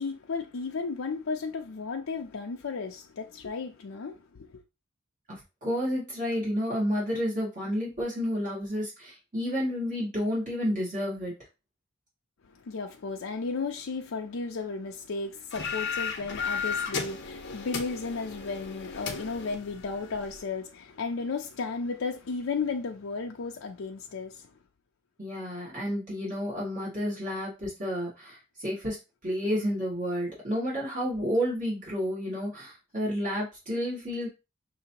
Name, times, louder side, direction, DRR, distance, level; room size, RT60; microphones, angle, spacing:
voice 1, 0.0-4.6 12.6-24.5, left 4 dB, 80° left, 0.5 m, -34 dB
voice 2, 5.3-11.3 25.2-29.0 29.2-34.3, equal, 40° right, 2.0 m, -30 dB
sound 1, 15.5-20.4, left 5 dB, 60° left, 0.8 m, -35 dB
5.8 x 2.8 x 2.8 m
head